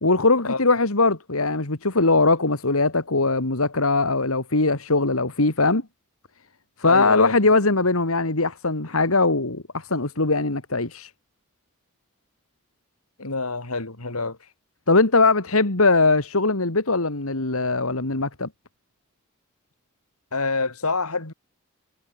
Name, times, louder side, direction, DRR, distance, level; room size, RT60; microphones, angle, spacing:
voice 1, 0.0-5.8 6.8-11.1 14.9-18.5, left 3 dB, 70° left, 2.3 m, -21 dB
voice 2, 6.8-7.3 13.2-14.4 20.3-21.3, left 3 dB, 90° left, 3.4 m, -27 dB
head